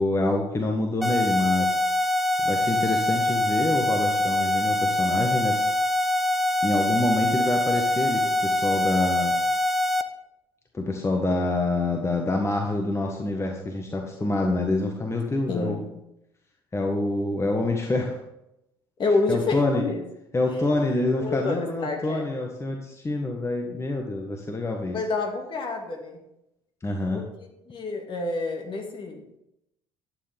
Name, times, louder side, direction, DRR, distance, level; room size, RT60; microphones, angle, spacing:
voice 1, 0.0-1.8 2.4-5.7 6.6-9.3 10.7-15.8 16.7-18.2 19.3-19.8 20.3-25.0 26.8-27.2, left 2 dB, 20° left, 2 dB, 1.6 m, -26 dB
sound 1, 1.0-10.0, left 1 dB, ahead, 0.9 m, -24 dB
voice 2, 15.5-15.9 19.0-20.0 20.9-22.2 24.9-26.2 27.1-29.2, left 3 dB, 40° left, 2 dB, 2.3 m, -28 dB
12.0 x 9.0 x 3.6 m, 0.84 s
hypercardioid pair, 55°, 12 cm